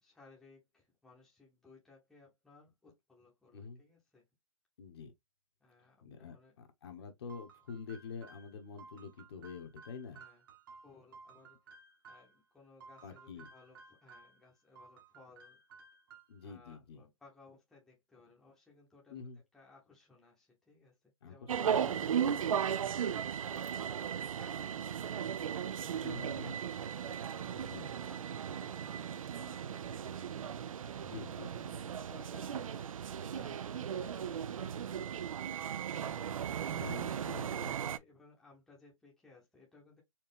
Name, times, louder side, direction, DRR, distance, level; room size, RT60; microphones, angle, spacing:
voice 1, 0.0-4.2 5.6-6.5 10.1-10.4 10.8-11.8 12.0-15.6 16.4-19.2 19.5-22.3 22.9-24.0 24.3-26.8 28.0-30.6 31.7-32.7 33.2-37.0 37.5-40.0, left 4 dB, ahead, 0.8 m, -61 dB
voice 2, 4.8-5.1 6.0-10.2 13.0-13.5 16.3-17.0 19.1-19.4 21.2-22.3 26.0-26.6 27.5-27.9 31.0-31.7 36.7-37.7, left 5 dB, 50° left, 1.1 m, -47 dB
sound 1, 7.3-12.4 12.8-14.4 14.8-16.5, right 4 dB, 40° right, 1.0 m, -57 dB
sound 2, 21.5-38.0, right 8 dB, 75° right, 0.5 m, -36 dB
4.4 x 2.3 x 3.5 m
hypercardioid pair, 160°, 17 cm